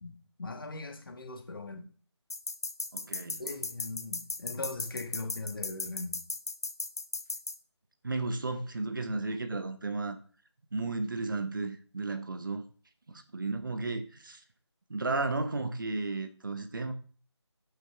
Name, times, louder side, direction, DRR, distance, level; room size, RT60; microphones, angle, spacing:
voice 1, 0.0-1.9 3.4-6.2, left 2 dB, 50° left, 1.6 m, -40 dB
sound 1, 2.3-7.5, left 3 dB, 35° left, 0.6 m, -36 dB
voice 2, 2.9-3.4 8.0-10.2 10.7-12.6 13.1-14.4 14.9-16.9, right 3 dB, 45° right, 1.0 m, -33 dB
8.9 x 7.3 x 3.5 m
figure-of-eight pair, 165°, 15 cm